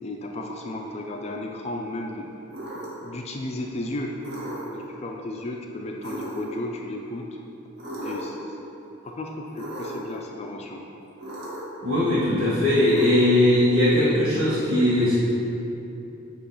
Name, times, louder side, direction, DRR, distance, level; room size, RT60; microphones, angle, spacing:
voice 1, 0.0-2.3 3.0-4.2 4.7-7.2 8.0-8.6 9.0-10.8, left 1 dB, 30° left, 1 dB, 0.4 m, -34 dB
sound 1, 2.5-3.1 4.2-4.9 6.0-6.7 7.8-8.5 9.5-10.1 11.2-11.8 12.9-13.6, right 1 dB, 50° right, 1.3 m, -36 dB
voice 2, 11.8-15.1, left 1 dB, 90° right, -11 dB, 1.5 m, -20 dB
8.5 x 3.1 x 5.5 m, 2.9 s
head